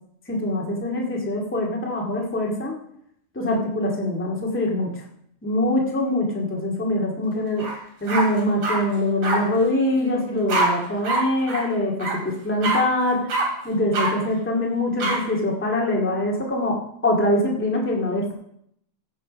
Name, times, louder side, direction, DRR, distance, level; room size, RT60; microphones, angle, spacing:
voice 1, 0.3-2.8 3.3-5.0 5.4-7.7 8.0-13.3 13.6-18.3, left 1 dB, 5° left, -2 dB, 1.6 m, -23 dB
sound 1, 7.6-7.7 8.1-8.8 9.2-9.4 10.5-10.7 11.0-11.2 11.5-11.6 12.0-12.1 12.6-12.8 13.3-13.4 13.9-14.1 15.0-15.2, right 3 dB, 70° right, 4.3 m, -23 dB
15.5 x 7.0 x 5.3 m, 0.72 s
omnidirectional pair, 3.4 m